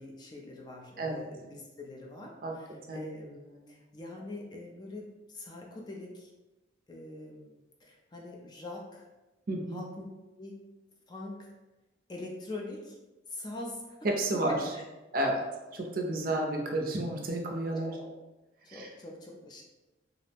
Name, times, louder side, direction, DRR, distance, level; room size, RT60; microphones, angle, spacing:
voice 1, 0.0-6.3 6.9-9.1 9.7-10.0 10.4-10.6 11.1-11.5 12.1-13.0 13.3-14.0 14.3-14.8 16.2-16.3 17.8-18.1 18.6-19.6, left 2 dB, 20° left, -1 dB, 0.3 m, -43 dB
voice 2, 9.5-9.8 14.0-14.6 15.1-15.4 15.7-18.0 18.7-18.9, right 1 dB, 50° right, 1 dB, 0.4 m, -31 dB
2.4 x 2.0 x 3.2 m, 1.1 s
head